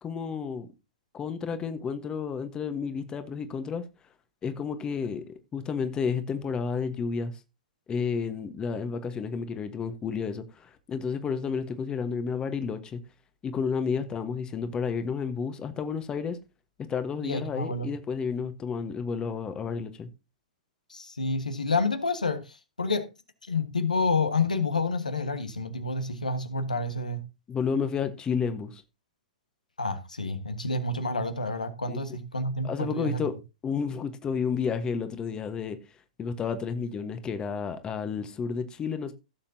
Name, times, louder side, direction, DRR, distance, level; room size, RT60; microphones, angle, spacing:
voice 1, 0.0-0.7 1.1-3.8 4.4-5.2 5.5-7.3 7.9-13.0 13.4-16.4 16.9-20.1 27.5-28.8 31.9-32.0 32.6-33.3 33.6-35.8 36.2-39.1, left 6 dB, 20° left, 1.3 m, -31 dB
voice 2, 17.2-17.9 20.9-23.0 23.4-27.2 29.8-33.2, left 3 dB, 90° left, 1.6 m, -29 dB
16.5 x 7.2 x 2.8 m
figure-of-eight pair, 110°, 4 cm